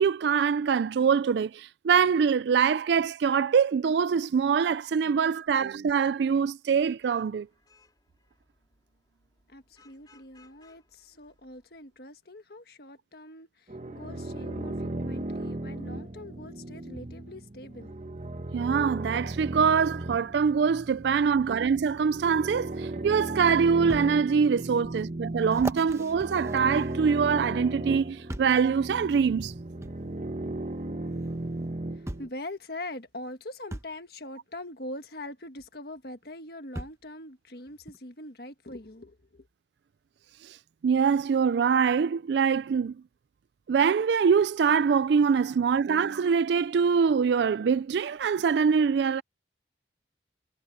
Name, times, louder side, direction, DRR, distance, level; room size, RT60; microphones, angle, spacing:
voice 1, 0.0-7.5 18.5-29.5 40.8-42.9 43.7-49.2, right 6 dB, 70° right, 0.3 m, -24 dB
Vehicle horn car horn honking / Traffic noise roadway noise, 6.8-12.1, left 4 dB, 20° left, 4.4 m, -64 dB
voice 2, 9.5-18.2 31.9-39.5, left 1 dB, 55° left, 1.6 m, -43 dB
sound 1, 13.7-32.3, right 1 dB, 40° right, 1.1 m, -36 dB
sound 2, 23.9-24.1 24.7-24.8 25.5-27.4 28.3-28.6 29.8-30.0 31.2-31.3 32.1-32.4 33.7-33.9 35.6-35.7 36.7-37.1 37.9-38.0, right 1 dB, 15° right, 1.0 m, -39 dB
head